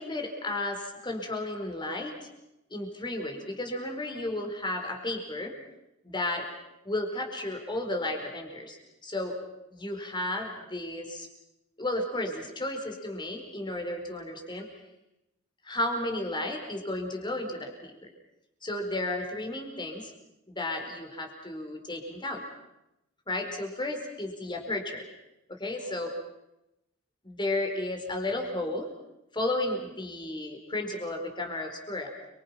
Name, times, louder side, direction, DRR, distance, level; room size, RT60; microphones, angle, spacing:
voice 1, 0.0-2.1 2.7-5.5 6.0-6.4 6.8-8.8 9.0-9.3 9.7-11.3 11.8-14.7 15.6-17.9 18.6-20.1 20.5-22.4 23.3-25.0 25.6-26.1 27.2-28.9 29.3-32.1, left 1 dB, 25° left, 4 dB, 4.8 m, -33 dB
30.0 x 25.0 x 5.9 m, 0.90 s
head